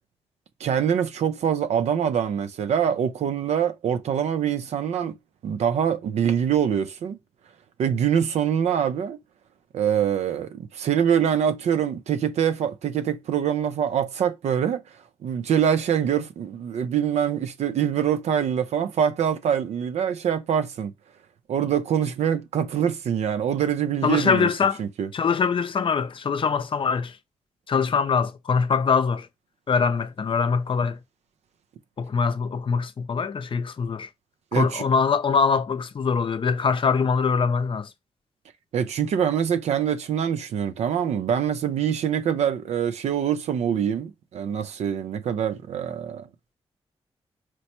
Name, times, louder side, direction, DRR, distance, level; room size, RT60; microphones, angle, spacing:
voice 1, 0.6-5.2 5.4-7.2 7.8-9.2 9.7-14.8 15.2-20.9 21.5-24.5 24.8-25.1 34.5-34.8 38.7-46.3, right 8 dB, 80° right, 0.5 m, -24 dB
voice 2, 24.0-24.8 25.1-27.1 27.7-29.3 29.7-31.0 32.0-34.1 34.5-37.9, left 5 dB, 50° left, 0.5 m, -23 dB
4.3 x 2.1 x 2.9 m
cardioid pair, 50°, 11 cm